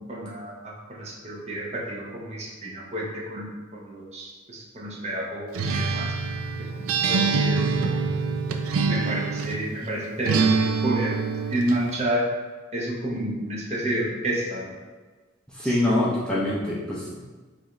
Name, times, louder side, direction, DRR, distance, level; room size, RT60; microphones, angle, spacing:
voice 1, 0.1-6.1 6.6-7.8 8.8-11.2 11.5-12.3 12.7-14.7 15.6-15.8, right 1 dB, 35° right, -3 dB, 0.7 m, -30 dB
Acoustic guitar, 5.5-9.7 10.3-11.8, right 4 dB, 90° right, 0.4 m, -25 dB
voice 2, 15.5-17.2, left 1 dB, 5° left, -7 dB, 0.5 m, -24 dB
4.9 x 2.6 x 3.0 m, 1.4 s
head